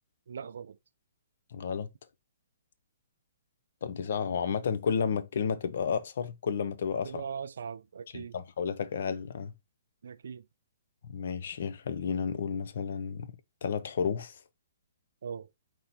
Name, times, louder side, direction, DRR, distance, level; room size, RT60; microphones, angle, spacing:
voice 1, 0.3-0.8 7.0-8.3 10.0-10.4 15.2-15.5, right 6 dB, 60° right, 0.3 m, -40 dB
voice 2, 1.5-1.9 3.8-7.3 8.1-9.5 11.0-13.3 13.6-14.4, left 6 dB, 45° left, 0.6 m, -32 dB
4.3 x 3.0 x 3.9 m
hypercardioid pair, 180°, 0 cm